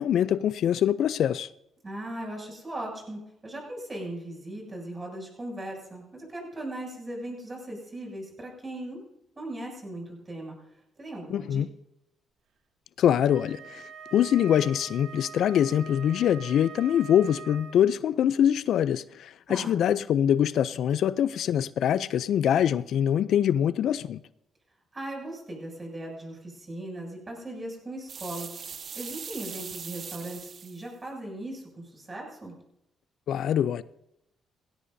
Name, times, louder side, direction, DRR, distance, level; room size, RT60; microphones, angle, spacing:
voice 1, 0.0-1.5 11.3-11.7 13.0-13.8 14.1-24.2 33.3-33.8, left 10 dB, 70° left, 0.4 m, -24 dB
voice 2, 1.8-9.0 9.4-10.5 11.0-11.6 19.5-19.8 24.9-28.6 29.0-32.5, right 1 dB, 25° right, 7.2 m, -38 dB
Wind instrument woodwind instrument, 13.3-18.0, right 7 dB, 75° right, 2.2 m, -44 dB
sound 1, 28.1-30.8, right 6 dB, 50° right, 0.9 m, -40 dB
19.0 x 16.5 x 2.7 m
cardioid pair, 90°, 0 cm